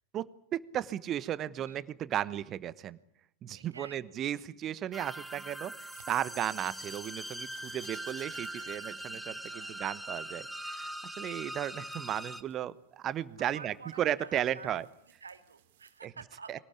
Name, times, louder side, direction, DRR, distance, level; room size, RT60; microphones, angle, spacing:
voice 1, 0.1-3.0 3.4-14.8 16.0-16.1 16.5-16.6, right 11 dB, 30° right, 18 dB, 1.0 m, -35 dB
voice 2, 3.5-4.0 6.1-6.4 8.5-8.9 9.5-10.0 11.2-11.6 13.4-14.8 15.2-16.6, right 5 dB, 75° right, 11 dB, 2.0 m, -50 dB
sound 1, 4.9-12.4, right 1 dB, ahead, 1.4 m, -42 dB
sound 2, 5.9-16.0, right 11 dB, 55° right, 2.5 m, -62 dB
24.0 x 18.5 x 9.9 m, 0.70 s
figure-of-eight pair, 90°, 0 cm